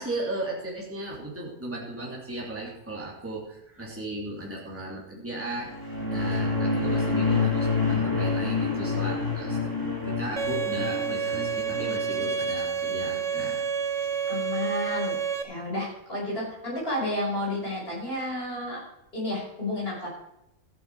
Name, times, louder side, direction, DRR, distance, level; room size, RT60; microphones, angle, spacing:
voice 1, 0.0-5.8 6.1-9.6 10.0-13.7 14.0-14.1, right 1 dB, 10° right, -4 dB, 2.9 m, -36 dB
sound 1, 5.6-12.3, left 4 dB, 15° left, 2.6 m, -27 dB
Bowed string instrument, 10.4-15.4, right 7 dB, 30° right, 0.8 m, -29 dB
voice 2, 14.3-15.2 15.4-18.8 19.1-20.1, left 1 dB, 40° left, -3 dB, 5.8 m, -31 dB
14.0 x 9.2 x 4.8 m, 0.82 s
omnidirectional pair, 1.6 m